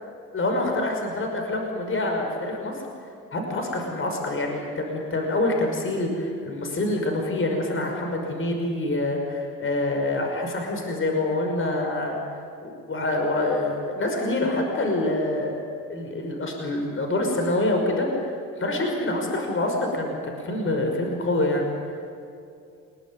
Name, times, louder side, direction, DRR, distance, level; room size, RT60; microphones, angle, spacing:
voice 1, 0.3-2.7 3.3-12.2 12.6-15.6 15.9-18.1 18.6-21.7, left 2 dB, 45° left, 2 dB, 5.8 m, -26 dB
27.5 x 21.5 x 9.3 m, 2.5 s
cardioid pair, 90°, 30 cm